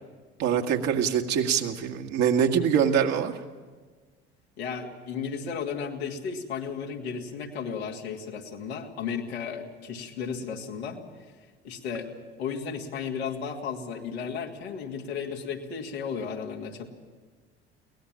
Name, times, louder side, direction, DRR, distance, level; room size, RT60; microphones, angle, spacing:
voice 1, 0.4-3.3, right 8 dB, 60° right, 4 dB, 1.9 m, -24 dB
voice 2, 4.6-11.0 11.6-12.1 12.4-16.9, left 6 dB, 80° left, 0 dB, 2.4 m, -34 dB
23.5 x 18.5 x 7.4 m, 1.4 s
hypercardioid pair, 60°, 31 cm